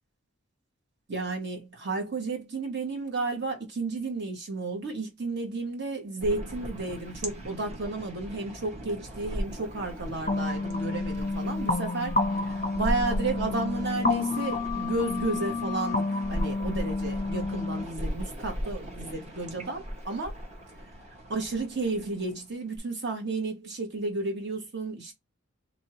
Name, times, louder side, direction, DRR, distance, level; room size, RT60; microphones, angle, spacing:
voice 1, 1.1-12.2 12.7-16.0 16.3-20.3 21.3-25.1, right 3 dB, 50° right, 1.3 m, -32 dB
sound 1, 6.2-22.8, equal, 30° right, 0.9 m, -38 dB
sound 2, 10.3-17.8, left 3 dB, 35° left, 0.5 m, -29 dB
2.9 x 2.7 x 4.2 m
head